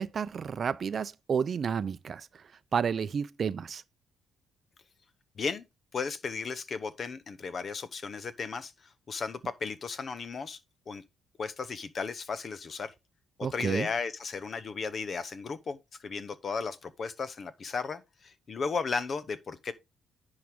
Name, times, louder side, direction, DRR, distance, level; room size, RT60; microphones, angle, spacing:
voice 1, 0.0-2.4 2.7-3.8 13.4-13.9, right 6 dB, 50° right, 0.5 m, -31 dB
voice 2, 5.9-10.6 10.9-11.0 11.4-12.9 13.4-19.7, left 5 dB, 45° left, 0.8 m, -35 dB
10.5 x 4.8 x 3.5 m
cardioid pair, 90°, 0 cm